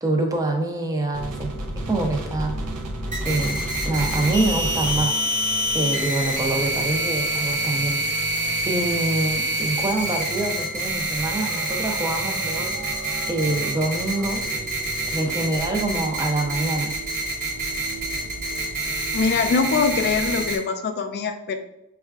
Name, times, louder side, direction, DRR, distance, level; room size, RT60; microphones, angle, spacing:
voice 1, 0.0-1.6 1.9-2.5 3.2-5.2 5.7-8.0 8.7-12.8 13.3-14.5 15.1-16.9, right 2 dB, 15° right, 2 dB, 0.4 m, -25 dB
sound 1, 1.1-20.5, right 1 dB, 80° right, 0.5 m, -35 dB
sound 2, 3.1-20.6, right 1 dB, 35° right, 1.0 m, -27 dB
voice 2, 19.1-21.6, left 4 dB, 45° left, 7 dB, 0.3 m, -23 dB
5.3 x 2.3 x 2.3 m, 0.86 s
head